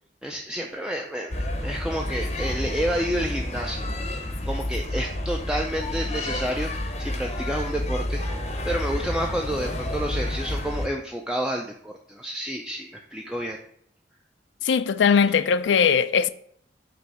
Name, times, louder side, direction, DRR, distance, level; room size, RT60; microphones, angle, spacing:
voice 1, 0.2-3.8 4.1-13.6, equal, 5° right, 0.4 m, -30 dB
sound 1, 1.3-10.9, left 1 dB, 35° left, 0.7 m, -29 dB
voice 2, 14.6-16.3, left 6 dB, 90° left, 0.4 m, -20 dB
6.1 x 3.1 x 5.5 m
head